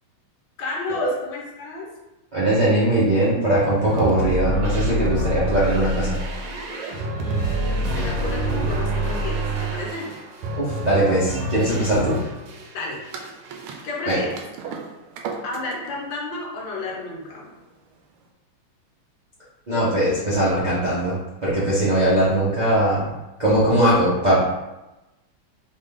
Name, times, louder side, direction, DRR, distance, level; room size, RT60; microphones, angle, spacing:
voice 1, 0.6-1.9 7.0-10.2 12.7-13.0 13.8-14.4 15.4-17.5, left 2 dB, 65° left, -2 dB, 1.5 m, -32 dB
voice 2, 2.3-6.2 10.5-12.2 14.1-14.2 19.7-23.1 23.4-24.4, right 1 dB, 45° right, -10 dB, 0.5 m, -20 dB
sound 1, 3.6-12.7 13.0-13.9, right 1 dB, 65° right, 1.3 m, -27 dB
sound 2, 13.1-18.2, right 5 dB, 90° right, 1.5 m, -38 dB
4.2 x 3.2 x 3.5 m, 1.0 s
omnidirectional pair, 2.3 m